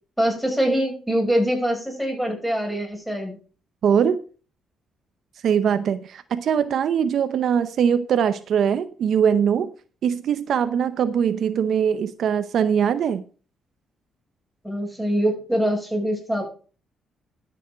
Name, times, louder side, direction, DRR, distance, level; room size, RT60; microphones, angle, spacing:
voice 1, 0.2-3.4 14.6-16.4, equal, ahead, 6.1 m, -24 dB
voice 2, 3.8-4.2 5.4-9.7 10.0-13.2, right 8 dB, 65° right, 0.7 m, -21 dB
12.5 x 7.1 x 5.1 m
cardioid pair, 90°, 0 cm